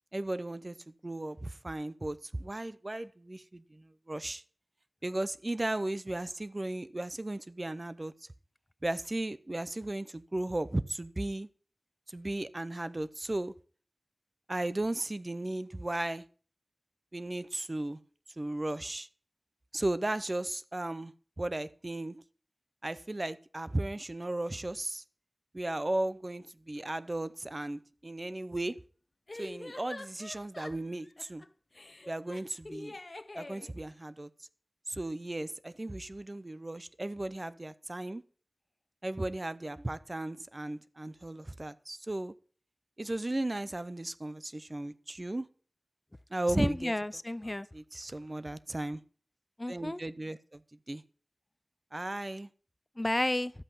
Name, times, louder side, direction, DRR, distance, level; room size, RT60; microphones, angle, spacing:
voice 1, 0.1-0.8 1.0-4.4 5.0-8.1 8.8-11.5 12.1-13.5 14.5-16.2 17.1-18.0 18.4-19.1 19.7-22.2 22.8-25.0 25.5-28.8 29.4-31.4 32.1-33.0 33.3-34.3 34.9-38.2 39.0-42.3 43.0-45.5 46.3-46.9 47.5-49.0 49.7-50.6 50.9-51.0 51.9-52.5, right 1 dB, 35° right, 0.6 m, -35 dB
sound 1, 26.9-27.0 29.3-31.5 31.7-33.7, left 2 dB, 45° left, 0.8 m, -45 dB
voice 2, 46.6-47.7 49.6-50.0 53.0-53.5, left 1 dB, 25° left, 0.4 m, -31 dB
12.5 x 8.1 x 5.5 m
wide cardioid pair, 65°, 0 cm